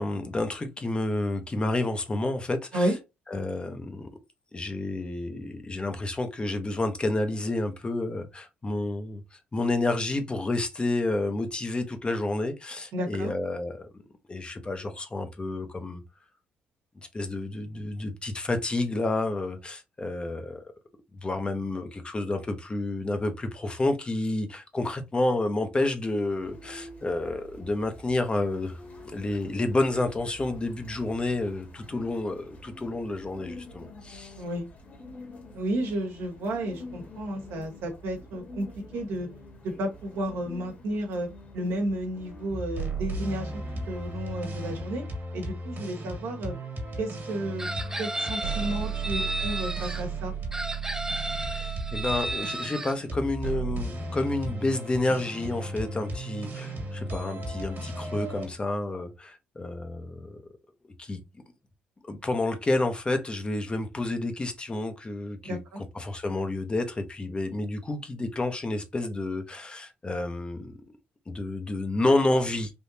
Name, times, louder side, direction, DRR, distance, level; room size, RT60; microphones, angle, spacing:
voice 1, 0.0-2.9 3.3-4.1 4.5-9.2 9.5-13.9 14.3-16.0 17.1-20.6 21.2-34.3 51.4-60.4 60.8-61.2 62.0-70.8 71.3-72.7, left 2 dB, 25° left, 0.8 m, -30 dB
voice 2, 12.9-13.3 34.4-34.7 35.5-38.7 38.9-39.3 39.6-41.3 41.5-43.5 43.9-45.0 45.3-46.6 47.0-47.7 48.0-50.3 65.4-65.8, right 1 dB, 75° right, 1.3 m, -32 dB
sound 1, 26.3-44.8, left 1 dB, 40° left, 1.5 m, -47 dB
sound 2, 42.5-58.5, right 3 dB, 50° right, 1.6 m, -35 dB
Chicken rooster, 47.6-50.0 50.5-52.9, right 1 dB, 10° right, 0.5 m, -33 dB
3.5 x 2.7 x 2.7 m
cardioid pair, 80°, 4 cm